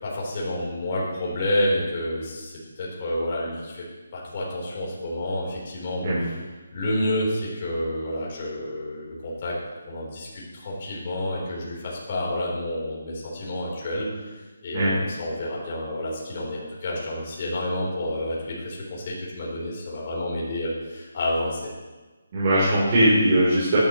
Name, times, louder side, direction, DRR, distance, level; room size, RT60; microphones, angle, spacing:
voice 1, 0.0-3.8 4.1-6.4 6.7-9.6 9.9-21.6, left 1 dB, 35° left, -5 dB, 4.0 m, -29 dB
voice 2, 22.3-23.8, right 1 dB, 35° right, -9 dB, 3.8 m, -20 dB
12.0 x 11.5 x 3.2 m, 1.2 s
hypercardioid pair, 165°, 0 cm